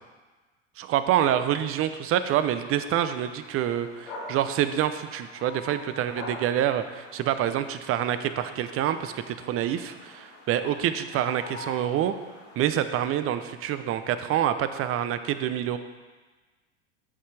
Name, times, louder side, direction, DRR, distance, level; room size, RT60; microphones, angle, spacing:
voice 1, 0.8-12.1 12.6-15.8, right 10 dB, 35° right, 11 dB, 0.7 m, -27 dB
sound 1, 2.6-12.6, left 2 dB, 85° left, 2.8 m, -45 dB
14.0 x 5.5 x 3.3 m, 1.3 s
hypercardioid pair, 90°, 38 cm